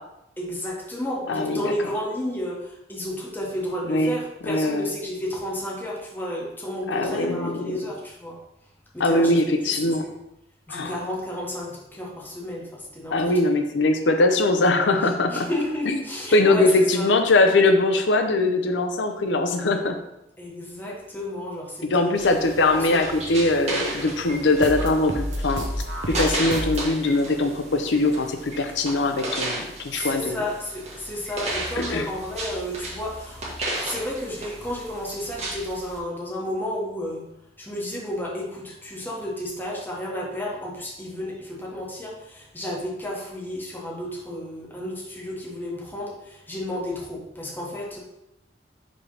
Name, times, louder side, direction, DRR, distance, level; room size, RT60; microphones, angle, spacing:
voice 1, 0.4-8.4 8.9-9.4 9.6-10.1 10.7-13.3 15.3-17.1 20.4-22.3 22.7-23.0 29.9-33.4 33.8-37.3 37.6-48.0, left 1 dB, 10° left, -4 dB, 1.3 m, -32 dB
voice 2, 1.3-1.7 3.9-4.2 4.4-4.9 6.9-7.8 9.0-10.1 10.7-11.0 13.1-15.5 16.3-20.0 21.9-25.7 26.1-30.4 31.8-32.1, left 2 dB, 90° left, 6 dB, 0.6 m, -21 dB
sound 1, 22.2-36.0, right 1 dB, 40° right, 1.2 m, -34 dB
sound 2, 24.5-26.9, equal, 75° right, 0.9 m, -29 dB
5.1 x 3.3 x 5.5 m, 0.87 s
head